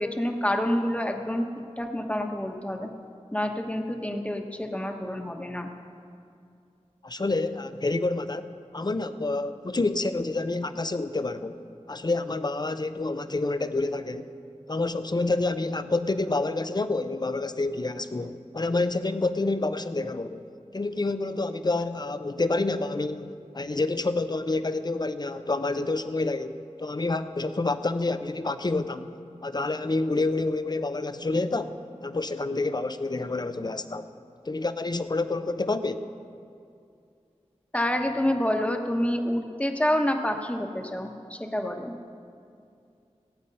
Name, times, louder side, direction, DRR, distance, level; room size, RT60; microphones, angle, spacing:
voice 1, 0.0-1.4 1.8-2.9 3.3-5.7 37.7-41.9, left 1 dB, 10° left, 4 dB, 1.1 m, -28 dB
voice 2, 7.0-11.6 11.9-14.3 14.7-20.4 20.7-26.5 26.8-29.1 29.4-34.1 34.5-36.1, left 2 dB, 35° left, 11 dB, 0.6 m, -28 dB
16.5 x 8.8 x 5.5 m, 2.5 s
wide cardioid pair, 55°, 12 cm